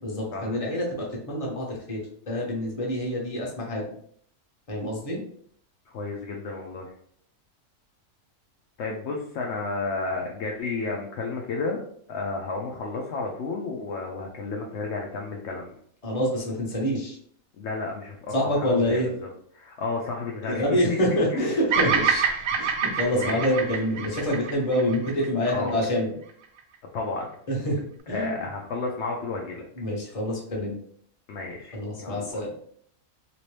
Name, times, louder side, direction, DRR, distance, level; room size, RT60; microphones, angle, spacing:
voice 1, 0.0-3.8 4.7-5.2 16.0-17.2 18.3-19.1 20.4-22.2 22.6-26.1 27.5-28.5 29.8-30.7 31.7-32.5, equal, 25° left, -3 dB, 0.9 m, -27 dB
voice 2, 5.9-6.9 8.8-11.8 12.1-15.7 17.6-18.3 18.6-19.3 19.5-20.6 21.3-21.6 22.5-22.7 23.1-23.4 25.4-25.8 26.9-27.3 28.1-29.7 31.3-32.4, left 3 dB, 65° left, -1 dB, 0.7 m, -32 dB
Bird vocalization bird call bird song, 21.7-26.0, right 6 dB, 70° right, 0.9 m, -26 dB
2.9 x 2.9 x 3.1 m, 0.62 s
omnidirectional pair, 1.6 m